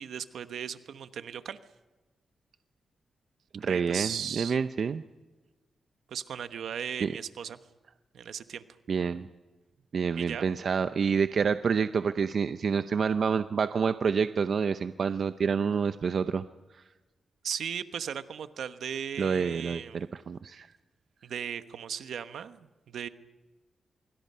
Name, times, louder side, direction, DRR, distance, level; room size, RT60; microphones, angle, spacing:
voice 1, 0.0-1.6 3.7-4.6 6.1-7.6 8.1-8.6 10.2-10.5 17.4-20.0 21.2-23.1, right 8 dB, 80° right, 10 dB, 1.1 m, -37 dB
voice 2, 3.5-5.0 7.0-7.1 8.9-9.3 9.9-16.4 19.2-20.7, right 6 dB, 60° right, 10 dB, 0.7 m, -28 dB
26.0 x 23.0 x 5.7 m, 1.2 s
cardioid pair, 100°, 0 cm